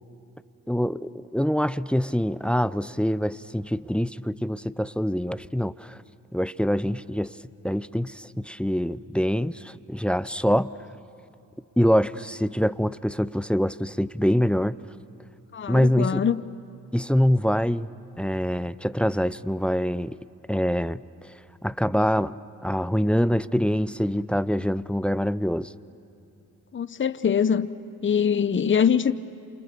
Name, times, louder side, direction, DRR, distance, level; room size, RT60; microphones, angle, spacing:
voice 1, 0.7-6.0 6.3-7.3 7.6-10.7 11.8-14.8 15.7-16.2 16.9-20.2 20.5-21.0 21.6-25.7, equal, 5° left, 0.5 m, -25 dB
voice 2, 15.5-16.4 26.7-27.7 28.0-29.1, left 7 dB, 35° left, 0.8 m, -23 dB
28.5 x 28.0 x 6.9 m
supercardioid pair, 60°, 34 cm